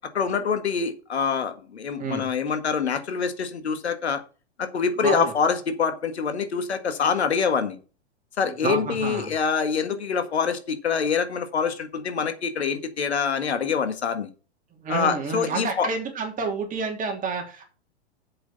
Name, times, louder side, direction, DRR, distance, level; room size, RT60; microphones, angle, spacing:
voice 1, 0.1-4.2 4.6-7.8 8.4-14.3 14.9-15.9, left 6 dB, 75° left, 1.7 m, -25 dB
voice 2, 2.0-2.3 5.0-5.3 8.5-9.3 14.8-17.6, right 4 dB, 25° right, 3.2 m, -29 dB
7.8 x 6.2 x 5.7 m
figure-of-eight pair, 105°, 33 cm